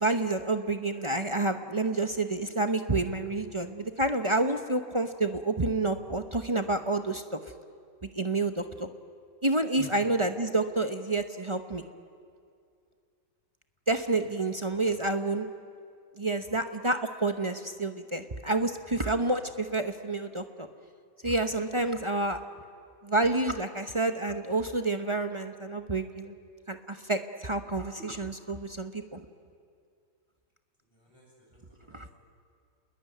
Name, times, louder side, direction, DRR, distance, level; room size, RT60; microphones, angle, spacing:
voice 1, 0.0-7.4 8.1-8.9 9.4-11.8 13.9-15.5 16.2-20.7 21.2-22.4 23.0-26.3 26.7-29.2 31.9-32.1, right 2 dB, 35° right, 7 dB, 0.5 m, -29 dB
voice 2, 30.9-32.2, right 1 dB, 10° left, -3 dB, 8.0 m, -50 dB
29.0 x 21.5 x 9.3 m, 2.3 s
omnidirectional pair, 2.1 m